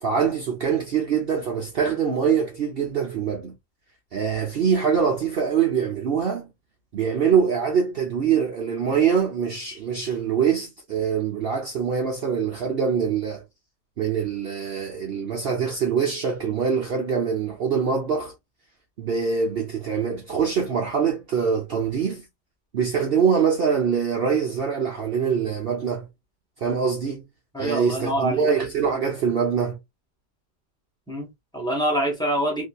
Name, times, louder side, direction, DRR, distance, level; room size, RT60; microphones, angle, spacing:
voice 1, 0.0-3.5 4.1-6.5 6.9-13.4 14.0-18.3 19.0-22.2 22.7-26.1 26.6-27.2 27.6-29.8, right 6 dB, 80° right, 0.5 m, -24 dB
voice 2, 27.5-28.5 31.1-32.6, right 1 dB, 5° left, 0.6 m, -25 dB
2.7 x 2.6 x 2.2 m
omnidirectional pair, 1.8 m